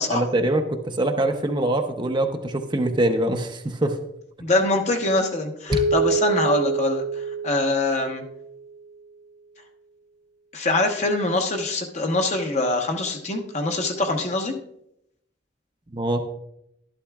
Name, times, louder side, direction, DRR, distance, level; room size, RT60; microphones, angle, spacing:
voice 1, 0.1-4.0 15.9-16.2, right 1 dB, 25° right, 5 dB, 0.7 m, -23 dB
voice 2, 4.4-8.2 10.5-14.5, left 2 dB, 40° left, 3 dB, 1.0 m, -24 dB
Keyboard (musical), 5.7-8.7, right 3 dB, 15° left, 0.8 m, -26 dB
12.0 x 11.5 x 2.3 m, 0.77 s
head